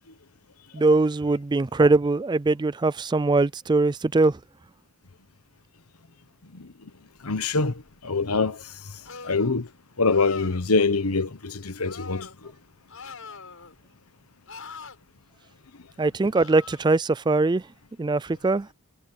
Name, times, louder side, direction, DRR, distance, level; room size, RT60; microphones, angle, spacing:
voice 1, 0.7-4.4 16.0-17.6 18.0-18.7, right 3 dB, 20° right, 0.3 m, -21 dB
voice 2, 6.4-6.9 7.2-9.7 10.0-12.5, left 3 dB, 85° left, 1.2 m, -25 dB
sound 1, 9.1-9.5 10.0-10.7 11.8-12.4 12.9-13.8 14.5-15.0 16.3-16.8, left 5 dB, 65° left, 7.8 m, -42 dB
head